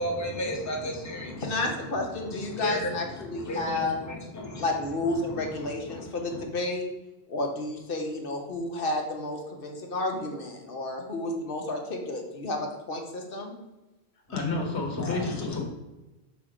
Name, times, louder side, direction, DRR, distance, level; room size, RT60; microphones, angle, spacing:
voice 1, 0.0-1.4 2.5-2.9 3.4-3.9 4.3-4.6 5.9-6.0 6.3-6.4 15.0-15.6, equal, 15° left, -1 dB, 1.0 m, -32 dB
voice 2, 1.4-4.0 4.6-6.8 7.3-13.5, left 2 dB, 55° left, 2 dB, 1.3 m, -31 dB
voice 3, 14.3-15.6, left 3 dB, 85° left, 1 dB, 1.5 m, -30 dB
5.7 x 4.2 x 4.9 m, 1.1 s
omnidirectional pair, 1.1 m